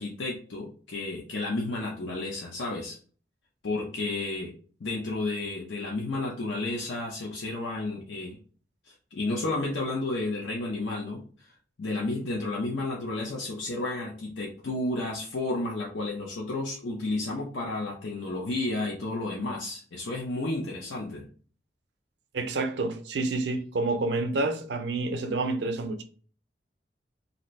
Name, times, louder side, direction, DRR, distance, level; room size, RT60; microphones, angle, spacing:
voice 1, 0.0-3.0 3.6-4.5 4.8-8.4 8.9-11.2 11.8-21.3, left 2 dB, 85° left, 0.6 m, -32 dB
voice 2, 22.3-26.0, right 2 dB, 70° right, 0.5 m, -28 dB
2.7 x 2.5 x 3.1 m
head